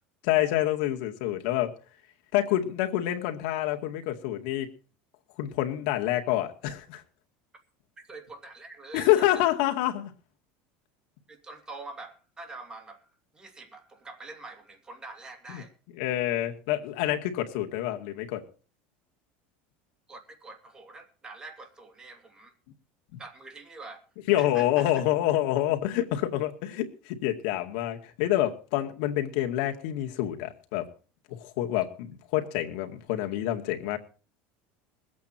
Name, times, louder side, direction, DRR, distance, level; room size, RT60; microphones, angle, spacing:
voice 1, 0.2-1.8 2.3-4.7 5.4-7.0 8.9-10.1 15.5-15.6 15.9-18.4 24.3-30.9 31.3-34.0, left 13 dB, 75° left, 4 dB, 2.2 m, -27 dB
voice 2, 8.1-9.5 11.3-13.1 13.3-15.7 20.1-22.5 23.2-24.0 24.4-24.9, right 3 dB, 15° right, 4 dB, 2.7 m, -45 dB
21.5 x 8.6 x 4.4 m, 0.37 s
supercardioid pair, 140°, 5 cm